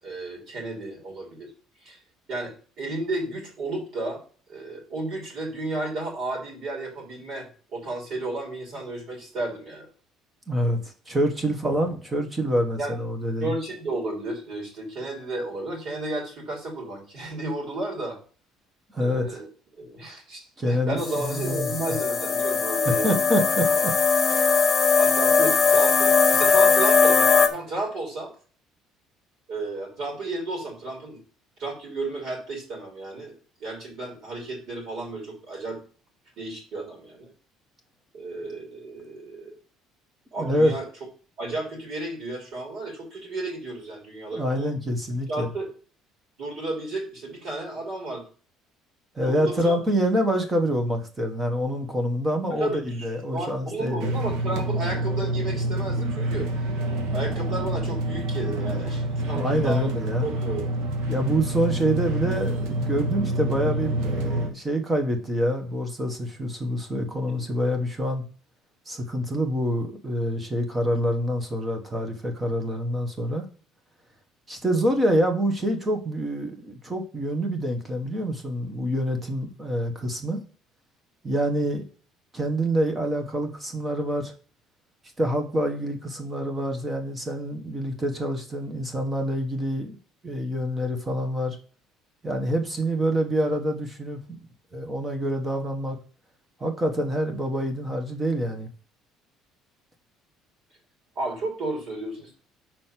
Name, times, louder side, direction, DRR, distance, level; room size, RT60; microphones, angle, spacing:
voice 1, 0.0-1.5 1.8-2.0 2.3-4.2 4.5-9.9 12.8-12.9 13.4-18.2 19.0-19.5 19.8-23.2 23.7-23.8 25.0-28.3 29.5-31.2 31.6-35.8 36.4-37.3 38.1-39.5 40.3-40.9 41.4-44.7 45.3-45.7 46.4-48.2 49.2-49.8 52.6-56.5 57.1-59.9 60.2-60.6 67.0-67.4 101.1-102.4, right 2 dB, 50° right, -1 dB, 3.2 m, -33 dB
voice 2, 10.5-13.5 18.9-19.4 20.6-21.7 23.0-23.9 24.3-24.5 40.4-40.7 44.3-45.5 49.1-54.1 59.3-60.3 61.1-68.2 68.9-73.4 74.5-80.4 81.2-81.8 82.3-84.3 85.2-90.0 90.2-91.6 92.2-94.4 94.7-96.0 96.6-98.7, equal, 15° right, 5 dB, 1.1 m, -26 dB
sound 1, 21.0-27.5, left 5 dB, 15° left, 0.7 m, -20 dB
sound 2, 54.0-64.5, right 1 dB, 75° right, 1.4 m, -27 dB
6.2 x 4.5 x 5.8 m, 0.40 s
cardioid pair, 180°, 0 cm